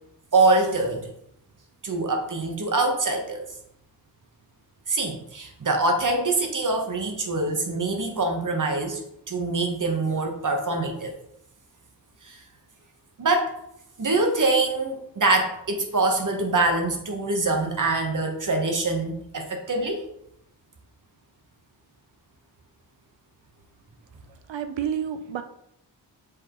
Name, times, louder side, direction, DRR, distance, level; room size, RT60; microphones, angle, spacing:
voice 1, 0.3-1.1 1.8-3.4 4.9-9.0 9.3-11.1 12.2-12.4 13.2-13.5 14.0-20.0, right 2 dB, 45° right, 3 dB, 1.1 m, -24 dB
voice 2, 24.5-25.4, right 8 dB, 80° right, 9 dB, 0.7 m, -29 dB
6.7 x 5.1 x 3.0 m, 0.76 s
wide cardioid pair, 145°, 44 cm